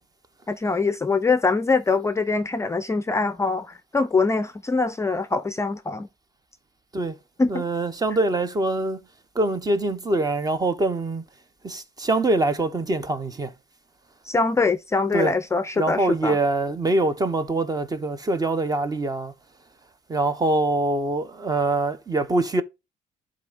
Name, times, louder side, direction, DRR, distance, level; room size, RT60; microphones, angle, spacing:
voice 1, 0.5-6.1 7.4-7.6 14.2-16.4, left 4 dB, 15° left, 0.5 m, -23 dB
voice 2, 7.5-9.0 9.3-11.2 11.6-13.5 15.1-15.3 15.8-19.3 20.1-22.6, right 2 dB, 20° right, 0.8 m, -24 dB
11.5 x 3.8 x 2.4 m
cardioid pair, 110°, 17 cm